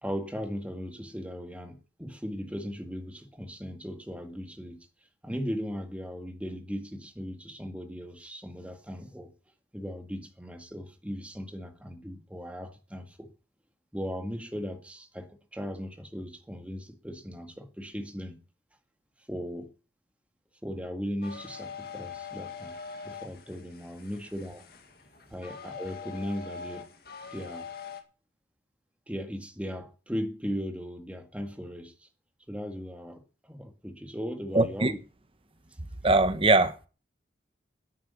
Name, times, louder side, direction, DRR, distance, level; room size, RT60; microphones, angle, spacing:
voice 1, 0.0-4.8 5.2-9.3 9.7-13.3 13.9-18.4 19.3-19.7 20.6-22.8 23.0-24.7 25.3-26.8 27.3-27.7 29.1-32.1 32.5-35.0, equal, 5° right, 1.9 m, -37 dB
sound 1, 21.2-28.0, left 6 dB, 55° left, 2.1 m, -43 dB
voice 2, 34.5-34.9 36.0-36.9, right 2 dB, 30° right, 1.1 m, -22 dB
10.5 x 8.7 x 8.3 m
head